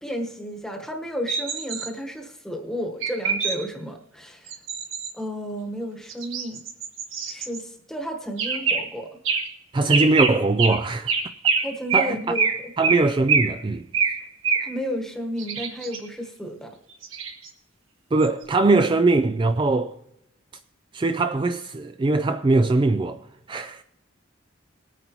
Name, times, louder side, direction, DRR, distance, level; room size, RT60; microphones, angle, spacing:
voice 1, 0.0-4.5 5.1-6.6 7.3-9.1 11.6-12.7 14.6-16.7, equal, 5° left, 1.2 m, -32 dB
sound 1, 1.3-1.9 3.0-3.6 4.5-5.1 6.1-7.6 8.4-8.8 9.2-9.4 9.9-10.3 10.6-10.8 11.1-11.6 11.9-12.1 12.3-12.5 12.8-13.0 13.3-13.5 13.9-14.1 14.4-14.7 15.4-16.0 17.0-17.5 18.2-18.3, right 5 dB, 70° right, 1.8 m, -24 dB
voice 2, 9.7-11.1 11.9-12.4 12.8-13.8 18.1-19.9 20.9-23.2 23.5-23.8, right 3 dB, 25° right, 0.3 m, -21 dB
21.0 x 9.1 x 3.0 m
head